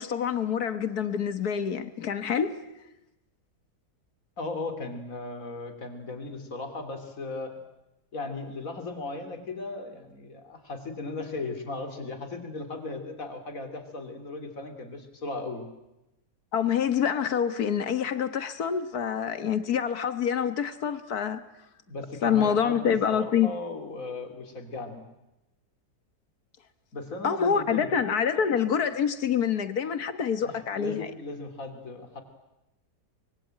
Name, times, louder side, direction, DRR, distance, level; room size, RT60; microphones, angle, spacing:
voice 1, 0.0-2.6 16.5-21.4 22.2-23.5 27.2-31.1, left 7 dB, 70° left, 1.8 m, -26 dB
voice 2, 4.4-7.6 8.1-15.7 21.9-25.1 26.9-27.9 30.4-32.2, left 3 dB, 55° left, 3.4 m, -37 dB
24.5 x 23.0 x 8.9 m
omnidirectional pair, 1.7 m